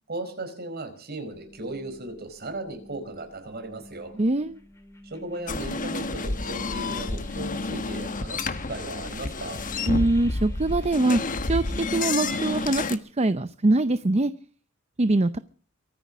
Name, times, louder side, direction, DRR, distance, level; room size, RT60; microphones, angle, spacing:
voice 1, 0.1-4.1 5.0-9.6, right 2 dB, 50° right, 7 dB, 4.8 m, -36 dB
sound 1, 1.3-11.7, left 1 dB, 15° left, 2.7 m, -50 dB
voice 2, 4.2-4.6 9.9-11.2 11.5-14.3 15.0-15.4, right 2 dB, 30° right, 13 dB, 0.7 m, -23 dB
sound 2, 5.5-13.0, left 3 dB, 40° left, 1.2 m, -30 dB
23.5 x 9.7 x 6.2 m, 0.41 s
head